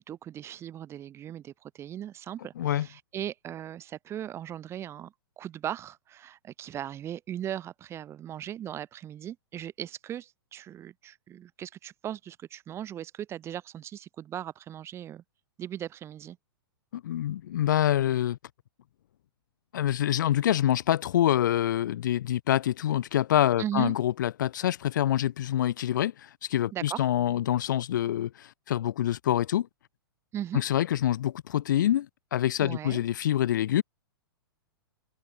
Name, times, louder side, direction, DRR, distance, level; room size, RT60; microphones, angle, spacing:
voice 1, 0.1-15.2 15.6-16.4 23.6-23.9 26.7-27.1 30.3-30.6 32.6-33.0, right 11 dB, 20° right, 1.1 m, -38 dB
voice 2, 16.9-18.4 19.7-29.7 30.5-33.8, left 12 dB, 50° left, 0.6 m, -26 dB
figure-of-eight pair, 105°, 13 cm